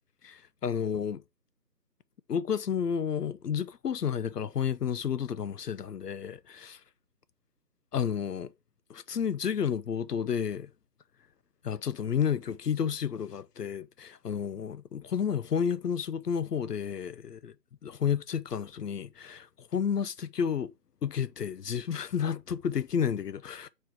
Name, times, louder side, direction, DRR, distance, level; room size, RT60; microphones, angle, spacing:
voice 1, 0.2-1.2 2.3-6.8 7.9-8.5 8.9-10.7 11.6-17.5 17.8-20.7 21.0-23.7, left 7 dB, 70° left, 0.5 m, -31 dB
7.0 x 3.2 x 4.5 m
figure-of-eight pair, 160°, 50 cm